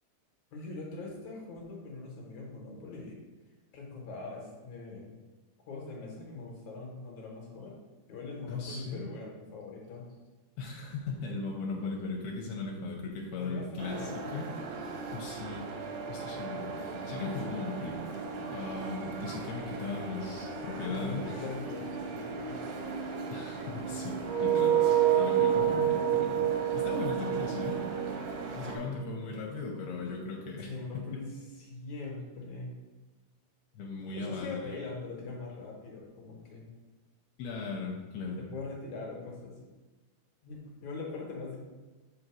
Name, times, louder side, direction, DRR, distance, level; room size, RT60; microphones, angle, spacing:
voice 1, 0.5-3.2 3.7-5.1 5.7-7.8 8.1-10.2 13.4-14.4 20.8-22.6 30.6-32.8 34.1-36.7 38.4-39.6 40.4-41.6, left 3 dB, 65° left, -2 dB, 2.0 m, -42 dB
voice 2, 8.5-9.0 10.6-14.5 14.9-15.7 16.1-18.0 18.5-21.2 23.3-26.5 26.7-27.8 28.5-30.7 33.7-34.7 37.4-38.4, left 4 dB, 80° left, -1 dB, 2.5 m, -38 dB
sound 1, 13.8-28.8, right 3 dB, 75° right, 1.9 m, -38 dB
sound 2, 24.2-29.1, right 10 dB, 90° right, 1.6 m, -27 dB
5.7 x 3.8 x 6.1 m, 1.2 s
omnidirectional pair, 4.6 m